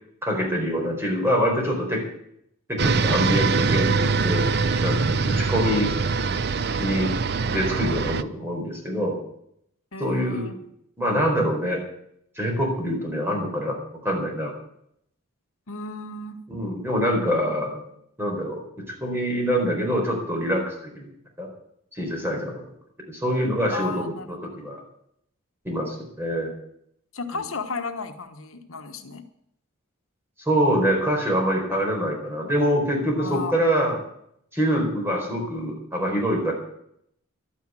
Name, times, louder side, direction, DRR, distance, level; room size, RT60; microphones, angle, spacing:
voice 1, 0.2-2.0 2.7-4.4 4.8-5.9 6.8-7.1 7.5-9.2 10.0-10.5 11.0-11.8 12.4-13.8 14.0-14.5 16.5-17.8 18.2-18.6 19.0-21.1 21.4-21.5 21.9-22.6 23.1-24.8 25.6-26.5 27.3-27.4 30.5-34.0 34.5-36.5, equal, 10° right, 0 dB, 4.4 m, -25 dB
sound 1, 2.8-8.2, right 4 dB, 50° right, 0.6 m, -23 dB
voice 2, 9.9-10.6 15.7-16.4 23.7-24.4 27.1-29.2 33.2-33.5, left 4 dB, 75° left, 6 dB, 1.2 m, -34 dB
12.0 x 10.5 x 9.0 m, 0.73 s
head